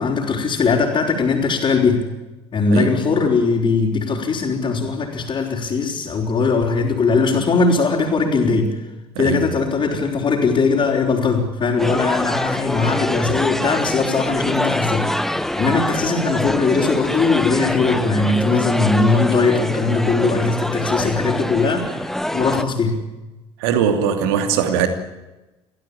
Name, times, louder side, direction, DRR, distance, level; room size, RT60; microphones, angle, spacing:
voice 1, 0.0-2.1 2.5-8.8 9.2-23.0, left 4 dB, 35° left, -5 dB, 4.8 m, -20 dB
sound 1, 11.8-22.6, left 1 dB, 5° left, 1.1 m, -24 dB
voice 2, 23.6-24.9, right 8 dB, 65° right, 7 dB, 2.7 m, -20 dB
26.5 x 16.5 x 8.8 m, 1.1 s
figure-of-eight pair, 55°, 14 cm